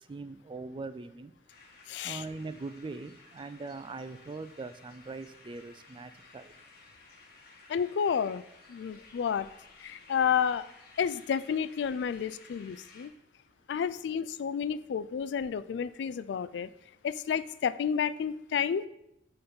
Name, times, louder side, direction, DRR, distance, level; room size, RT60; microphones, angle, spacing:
voice 1, 0.1-1.3 2.0-6.5, right 3 dB, 30° right, 12 dB, 0.3 m, -41 dB
sound 1, 1.5-13.1, left 3 dB, 60° left, 1.3 m, -56 dB
voice 2, 1.9-2.2 7.7-8.4 8.7-9.5 9.8-10.7 11.0-13.1 13.7-16.7 17.0-18.9, left 7 dB, 85° left, 16 dB, 0.3 m, -30 dB
6.9 x 3.9 x 5.3 m, 0.81 s
head